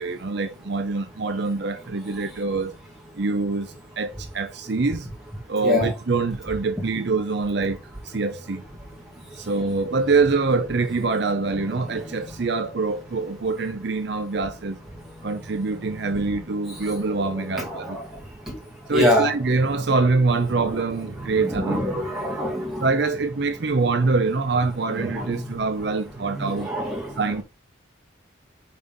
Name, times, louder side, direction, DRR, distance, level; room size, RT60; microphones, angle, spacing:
voice 1, 0.0-2.7 3.1-5.1 5.5-7.8 8.0-8.6 9.4-14.8 15.2-18.0 18.9-22.0 22.8-26.7 27.2-27.4, right 3 dB, 55° right, 0.6 m, -24 dB
voice 2, 17.5-18.0 18.9-19.3 21.4-22.9 25.0-25.3 26.3-27.1, left 1 dB, ahead, 1.9 m, -24 dB
5.3 x 4.0 x 5.2 m
head